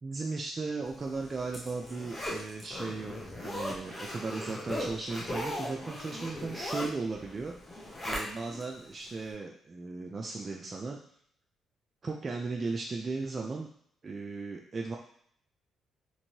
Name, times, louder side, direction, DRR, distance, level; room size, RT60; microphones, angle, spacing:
voice 1, 0.0-3.2 3.4-7.5 8.0-11.0 12.0-13.7 14.0-15.0, right 3 dB, 35° right, 0 dB, 0.4 m, -36 dB
Zipper (clothing), 1.0-8.6 9.1-9.2, left 1 dB, 25° left, 0.9 m, -38 dB
3.0 x 2.6 x 2.8 m, 0.66 s
cardioid pair, 90°, 0 cm